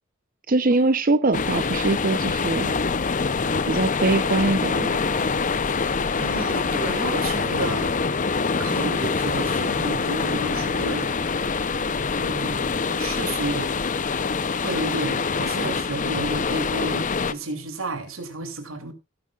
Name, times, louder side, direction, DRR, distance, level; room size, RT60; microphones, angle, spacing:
voice 1, 0.5-2.7 3.7-5.3, right 2 dB, 45° right, 0.7 m, -23 dB
sound 1, 1.3-17.3, left 4 dB, 40° left, 0.7 m, -25 dB
voice 2, 6.2-7.9 8.6-11.2 12.2-13.7 14.6-18.9, right 2 dB, 85° right, 2.9 m, -31 dB
17.5 x 9.7 x 2.4 m
head